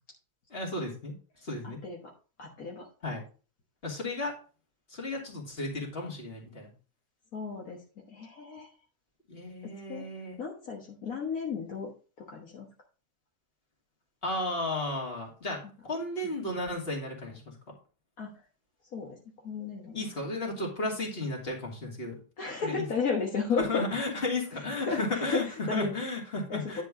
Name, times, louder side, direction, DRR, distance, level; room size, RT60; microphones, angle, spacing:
voice 1, 0.5-1.1 1.4-1.8 3.0-3.2 3.8-4.3 4.9-6.7 9.3-10.4 14.2-17.5 19.9-22.2 22.6-22.8 23.6-25.4 25.7-26.8, left 2 dB, 40° left, -1 dB, 2.9 m, -34 dB
voice 2, 1.6-2.1 2.4-2.9 7.3-7.8 8.1-8.7 9.6-10.1 10.4-11.9 12.2-12.7 18.2-18.3 18.9-19.2 19.4-20.1 22.4-23.8 24.7-25.9 26.5-26.8, left 5 dB, 65° left, -1 dB, 1.8 m, -33 dB
10.5 x 4.7 x 4.9 m, 0.37 s
omnidirectional pair, 1.7 m